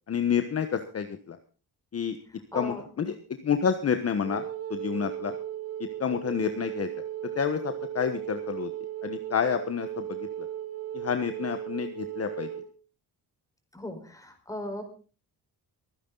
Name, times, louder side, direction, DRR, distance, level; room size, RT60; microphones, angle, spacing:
voice 1, 0.1-1.4 1.9-2.2 2.5-3.1 3.4-4.4 4.7-5.3 5.8-6.9 7.3-8.7 9.0-10.5 10.9-12.5, left 7 dB, 40° left, 8 dB, 1.3 m, -29 dB
voice 2, 2.5-2.9 13.7-14.8, left 1 dB, 10° left, 5 dB, 4.8 m, -37 dB
Wind instrument woodwind instrument, 4.2-12.7, right 11 dB, 40° right, 2.5 m, -36 dB
23.5 x 9.8 x 4.0 m, 0.37 s
cardioid pair, 110°, 37 cm